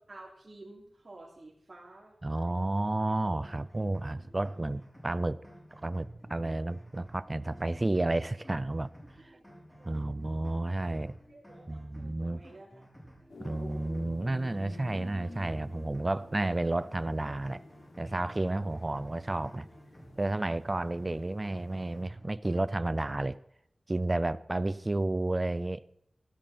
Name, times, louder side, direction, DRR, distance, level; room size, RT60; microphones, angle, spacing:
voice 1, 0.0-2.4 4.2-4.3 7.4-7.5 9.3-9.4 9.8-10.4 11.3-12.8 18.5-18.7 20.7-20.8, right 2 dB, 45° right, 3.2 m, -52 dB
voice 2, 2.2-5.4 5.8-8.9 9.2-9.3 9.8-11.1 11.7-12.4 13.4-17.6 18.0-19.7 20.2-23.4 23.9-25.8, right 2 dB, 30° right, 0.5 m, -31 dB
sound 1, 3.4-22.6, equal, 10° left, 6.6 m, -53 dB
sound 2, 13.3-22.0, left 2 dB, 80° left, 3.5 m, -50 dB
18.5 x 14.0 x 4.3 m
wide cardioid pair, 90°, 0 cm